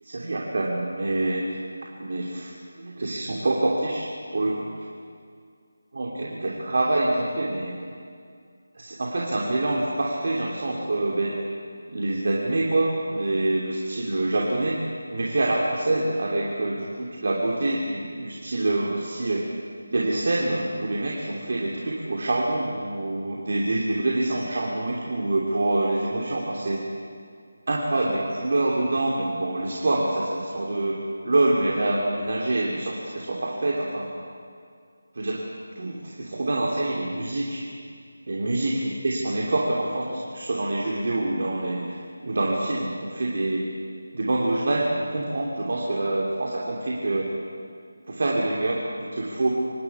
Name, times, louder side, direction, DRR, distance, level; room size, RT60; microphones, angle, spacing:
voice 1, 0.0-1.4 2.0-2.5 2.8-4.1 4.3-4.7 5.9-7.8 8.7-11.4 11.9-14.8 15.1-19.5 19.9-26.8 27.7-31.0 31.2-34.1 35.1-35.4 35.8-37.6 38.3-43.7 44.1-47.3 48.1-48.8 49.1-49.5, right 2 dB, 50° right, -3 dB, 3.0 m, -26 dB
25.5 x 13.0 x 8.3 m, 2.2 s
figure-of-eight pair, 175°, 0 cm